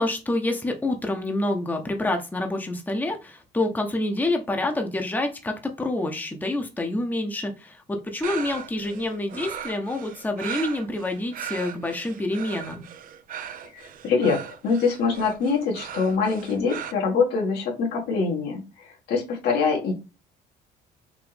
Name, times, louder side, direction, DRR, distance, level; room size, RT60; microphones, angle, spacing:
voice 1, 0.0-12.9, left 2 dB, 10° left, 4 dB, 0.9 m, -27 dB
sound 1, 8.2-16.9, right 9 dB, 55° right, 0.6 m, -38 dB
voice 2, 13.7-19.9, left 5 dB, 75° left, 0 dB, 2.0 m, -24 dB
5.0 x 3.0 x 3.4 m, 0.29 s
cardioid pair, 110°, 17 cm